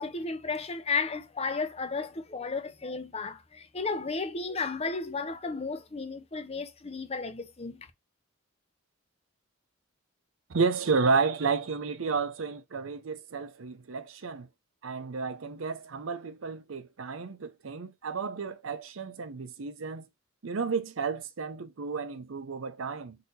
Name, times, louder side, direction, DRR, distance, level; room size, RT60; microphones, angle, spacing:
voice 1, 0.0-7.9, left 4 dB, 30° left, 0.7 m, -33 dB
voice 2, 10.5-14.5 14.8-20.1 20.4-23.2, right 4 dB, 80° right, 0.6 m, -31 dB
4.0 x 2.8 x 4.0 m
head